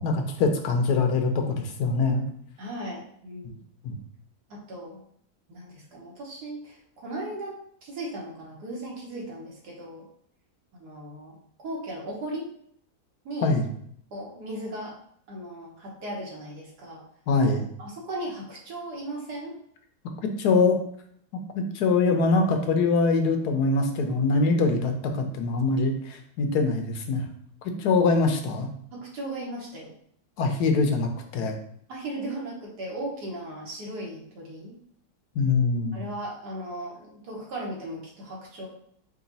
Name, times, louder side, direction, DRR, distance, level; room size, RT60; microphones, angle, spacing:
voice 1, 0.0-2.3 3.8-3.9 13.4-13.6 17.3-17.7 20.2-20.8 21.5-27.2 27.8-28.7 30.4-31.5 35.4-36.0, left 3 dB, 80° left, 5 dB, 1.2 m, -23 dB
voice 2, 2.6-3.6 4.5-5.0 5.5-10.1 10.7-12.5 13.3-13.5 14.1-15.0 15.3-17.0 17.8-19.6 27.9-28.1 28.9-29.9 31.9-34.8 35.9-38.7, right 1 dB, 85° right, -2 dB, 1.8 m, -37 dB
4.9 x 2.3 x 4.0 m, 0.65 s
omnidirectional pair, 1.7 m